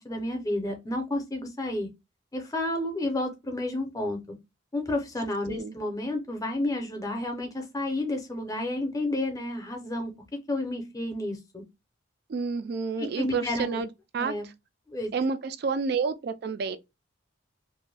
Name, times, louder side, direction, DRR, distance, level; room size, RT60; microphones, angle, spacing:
voice 1, 0.0-1.9 2.3-4.2 4.7-10.1 10.5-11.6 13.0-13.8 14.2-14.4 14.9-15.1, left 1 dB, 15° left, 0.6 m, -31 dB
voice 2, 12.3-13.9 14.1-14.3 15.1-16.8, right 5 dB, 50° right, 0.3 m, -29 dB
2.5 x 2.1 x 3.2 m
head